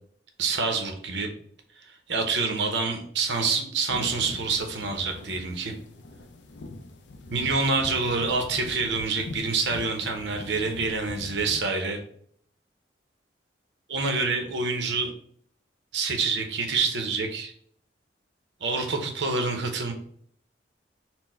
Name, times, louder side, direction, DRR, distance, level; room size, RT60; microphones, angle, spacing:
voice 1, 0.4-1.3 2.1-5.7 7.3-12.0 13.9-15.1 15.9-17.5 18.6-19.9, right 4 dB, 75° right, 4 dB, 0.8 m, -27 dB
sound 1, 3.9-11.6, left 2 dB, 80° left, 0.5 m, -42 dB
4.4 x 2.1 x 4.2 m, 0.63 s
head